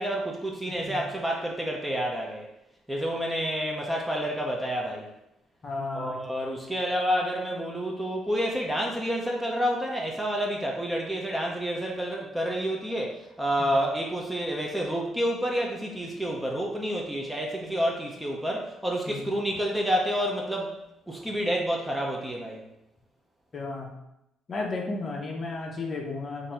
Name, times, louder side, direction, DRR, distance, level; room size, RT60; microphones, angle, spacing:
voice 1, 0.0-2.5 2.9-5.1 5.9-20.8 21.1-22.6, equal, 5° right, -1 dB, 0.6 m, -29 dB
voice 2, 0.7-1.0 5.6-6.2 13.6-13.7 19.1-19.3 23.5-23.9 24.5-26.5, left 3 dB, 35° left, 0 dB, 0.8 m, -34 dB
4.0 x 2.6 x 4.3 m, 0.87 s
cardioid pair, 130°, 0 cm